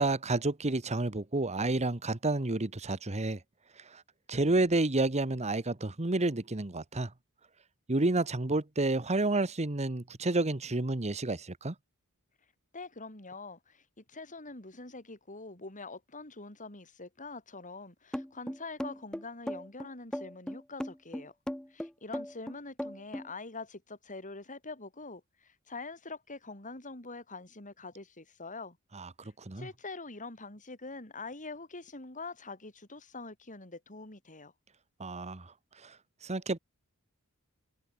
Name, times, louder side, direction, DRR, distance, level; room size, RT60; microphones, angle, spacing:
voice 1, 0.0-3.4 3.8-4.0 4.3-7.1 7.9-11.7 28.9-29.7 35.0-35.5 35.8-35.9 36.2-36.6, right 2 dB, 30° right, 1.3 m, -30 dB
voice 2, 12.7-21.3 21.7-28.8 29.6-34.5, left 3 dB, 35° left, 5.3 m, -44 dB
sound 1, 18.1-23.3, equal, 5° left, 0.4 m, -37 dB
head